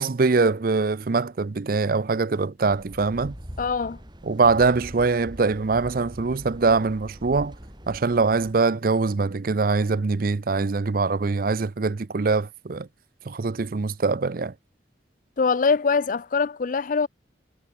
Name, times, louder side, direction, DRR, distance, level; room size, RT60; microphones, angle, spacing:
voice 1, 0.0-3.3 4.3-7.5 7.9-12.9 13.3-14.5, right 4 dB, 50° right, 0.5 m, -23 dB
sound 1, 2.6-8.5, equal, 25° right, 5.3 m, -42 dB
voice 2, 3.6-4.0 15.4-17.1, left 5 dB, 45° left, 0.4 m, -23 dB
head